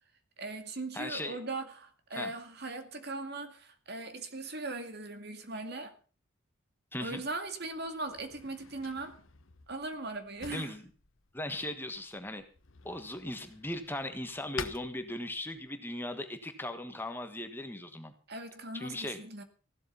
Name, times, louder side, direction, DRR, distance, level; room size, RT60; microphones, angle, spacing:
voice 1, 0.4-5.9 7.0-9.2 9.7-10.7 18.3-19.4, right 2 dB, 50° right, 2.2 m, -39 dB
voice 2, 0.9-1.4 2.1-2.3 6.9-7.2 10.5-10.9 11.3-12.4 12.8-18.1 18.7-19.2, left 1 dB, 10° left, 1.4 m, -38 dB
Drawer open or close, 6.9-15.7, left 6 dB, 70° left, 1.3 m, -49 dB
16.0 x 12.5 x 5.6 m
head